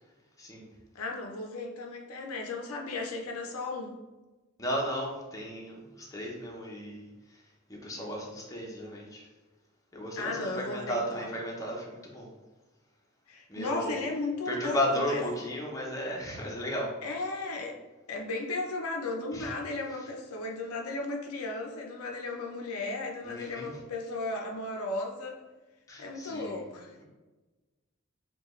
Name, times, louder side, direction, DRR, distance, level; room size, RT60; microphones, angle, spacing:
voice 1, 0.4-0.7 4.6-7.1 7.7-9.3 9.9-12.3 13.5-14.0 14.5-16.9 19.3-19.5 23.2-23.7 25.9-26.6, equal, 15° left, -2 dB, 0.7 m, -34 dB
voice 2, 0.9-4.0 10.2-11.3 13.3-15.2 17.0-17.8 18.1-25.3 26.0-27.0, left 2 dB, 85° left, 2 dB, 0.5 m, -35 dB
4.8 x 2.3 x 3.0 m, 1.2 s
head